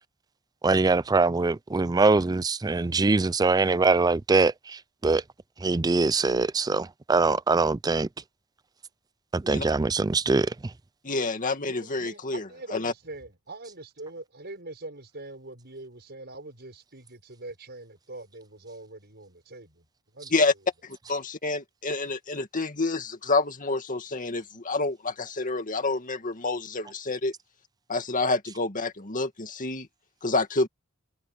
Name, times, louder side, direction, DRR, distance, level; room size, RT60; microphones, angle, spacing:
voice 1, 0.6-5.2 5.6-8.1 9.3-10.7, right 3 dB, 15° right, 0.4 m, -23 dB
voice 2, 11.0-12.4 12.7-12.9 20.3-20.5 20.8-27.3 27.9-29.9 30.2-30.7, left 3 dB, 35° left, 2.2 m, -28 dB
voice 3, 11.6-19.9 20.1-20.3, right 2 dB, 50° right, 6.8 m, -43 dB
head